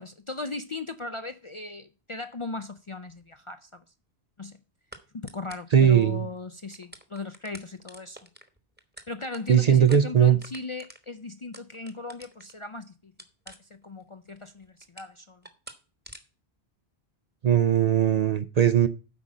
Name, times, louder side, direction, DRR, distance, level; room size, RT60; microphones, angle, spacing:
voice 1, 0.0-3.8 4.4-4.6 5.1-8.2 9.1-13.1 13.5-15.5, left 3 dB, 40° left, 0.4 m, -38 dB
sound 1, 3.1-3.2 4.9-5.0 5.3-5.8 6.3-6.4 6.6-12.7 13.2-14.0 14.3-15.2 15.4-15.8 16.0-16.2, right 1 dB, 10° right, 1.1 m, -47 dB
voice 2, 5.7-6.3 9.5-10.4 17.4-18.9, right 9 dB, 50° right, 0.6 m, -19 dB
8.4 x 5.2 x 7.3 m
omnidirectional pair, 1.1 m